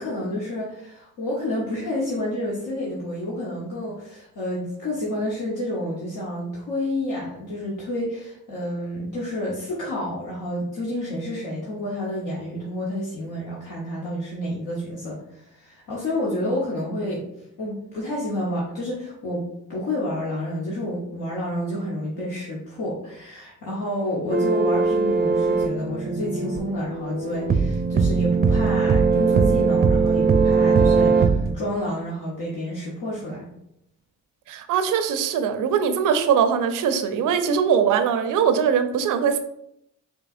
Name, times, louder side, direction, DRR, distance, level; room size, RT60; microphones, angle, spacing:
voice 1, 0.0-17.2 17.6-19.4 19.7-33.5, left 1 dB, 75° left, -6 dB, 1.2 m, -29 dB
sound 1, 24.3-31.5, right 4 dB, 30° right, 0.5 m, -20 dB
voice 2, 34.5-39.4, right 7 dB, 75° right, 9 dB, 0.6 m, -21 dB
5.1 x 3.0 x 2.6 m, 0.78 s
supercardioid pair, 60°, 32 cm